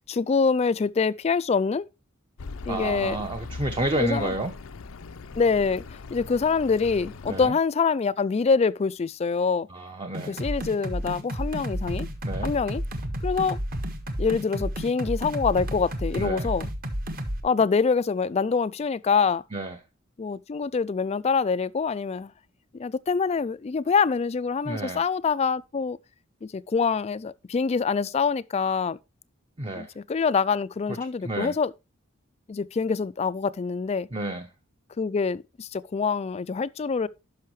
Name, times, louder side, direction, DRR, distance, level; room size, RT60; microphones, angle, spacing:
voice 1, 0.1-1.9 2.7-3.2 4.0-4.3 5.3-9.7 10.3-12.1 12.4-12.8 13.2-13.6 14.2-16.6 17.4-19.4 20.2-22.3 22.7-26.0 26.4-29.0 29.7-31.7 32.5-34.1 35.0-37.1, left 5 dB, 30° left, 0.3 m, -25 dB
Accelerating revving vroom, 2.4-7.5, left 3 dB, 75° left, 0.6 m, -40 dB
voice 2, 2.7-4.5 7.3-7.6 9.7-10.4 12.2-12.5 16.2-16.5 19.5-19.8 24.6-25.0 29.6-29.9 30.9-31.0 31.2-31.6 34.1-34.5, right 2 dB, 25° right, 0.8 m, -30 dB
sound 1, 10.1-17.4, equal, 45° right, 1.4 m, -31 dB
11.5 x 5.6 x 3.1 m
head